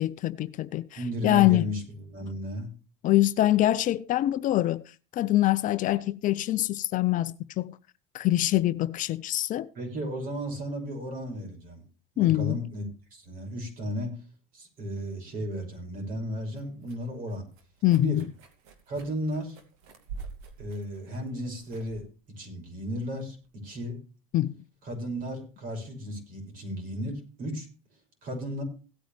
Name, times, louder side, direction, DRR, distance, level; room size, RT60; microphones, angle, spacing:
voice 1, 0.0-0.9 1.2-1.7 3.0-4.8 5.1-7.7 8.1-9.7 12.2-12.6 17.8-18.2 24.3-24.5, left 15 dB, 45° left, 0.6 m, -24 dB
voice 2, 1.0-2.7 9.7-11.8 12.1-12.8 13.1-14.1 14.5-17.5 18.0-18.2 18.9-19.6 20.6-22.0 22.4-24.0 24.8-27.7 28.2-28.6, equal, 45° right, 6.3 m, -34 dB
sound 1, 16.4-23.5, right 5 dB, 75° right, 2.6 m, -48 dB
17.0 x 9.1 x 3.4 m
supercardioid pair, 110°, 19 cm